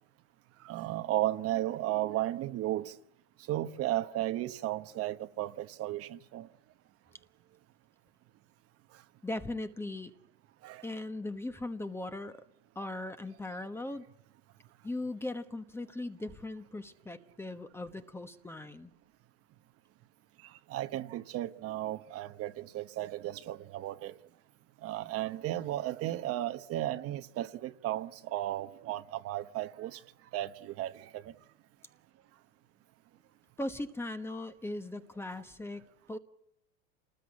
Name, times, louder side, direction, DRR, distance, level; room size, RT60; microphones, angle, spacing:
voice 1, 0.6-2.9 3.5-6.5 10.6-10.8 20.7-24.1 24.8-30.0 30.3-31.3, right 14 dB, 40° right, 1.1 m, -34 dB
voice 2, 9.2-10.1 10.8-12.4 12.7-14.1 14.8-18.9 33.6-36.2, left 2 dB, 5° left, 1.1 m, -39 dB
28.0 x 20.0 x 9.7 m
supercardioid pair, 150°, 36 cm